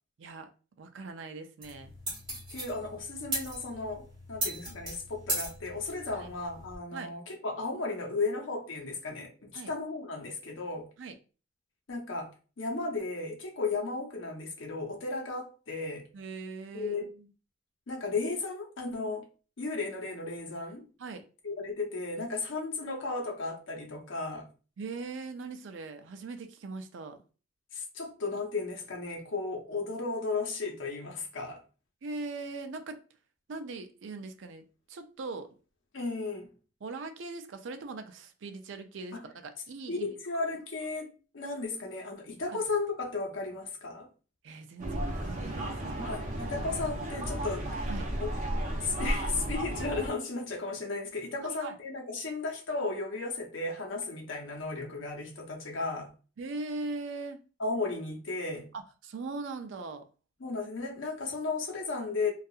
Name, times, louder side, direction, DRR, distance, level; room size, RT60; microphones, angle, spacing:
voice 1, 0.2-0.5 0.8-1.9 6.1-6.3 6.9-7.1 9.5-9.7 11.0-11.2 16.1-17.3 21.0-21.2 24.8-27.2 32.0-33.0 33.5-35.5 36.8-40.1 42.5-42.6 44.4-46.2 47.9-48.1 51.4-51.8 56.4-57.4 58.7-60.0, right 3 dB, 75° right, 0.4 m, -40 dB
sound 1, 1.6-6.8, right 1 dB, 25° right, 1.5 m, -38 dB
voice 2, 2.5-10.9 11.9-16.1 16.7-17.1 17.9-19.3 19.6-20.9 21.4-24.5 27.7-31.6 35.9-36.5 39.1-39.2 39.9-44.1 46.0-47.7 48.2-48.3 48.6-56.1 57.6-58.7 60.4-62.3, left 3 dB, 90° left, 0.7 m, -35 dB
sound 2, 44.8-50.1, right 1 dB, 45° right, 0.7 m, -33 dB
2.7 x 2.3 x 2.3 m
head